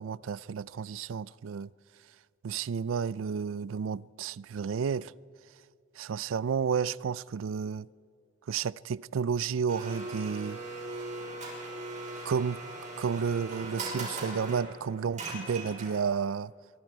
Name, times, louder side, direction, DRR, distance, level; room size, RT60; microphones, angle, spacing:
voice 1, 0.0-1.7 2.4-5.1 6.0-7.9 8.5-10.6 12.2-12.6 13.0-16.5, right 6 dB, 85° right, 0.4 m, -31 dB
Domestic sounds home sounds, 9.7-16.2, right 2 dB, 40° right, 5.4 m, -39 dB
24.0 x 23.5 x 4.7 m
head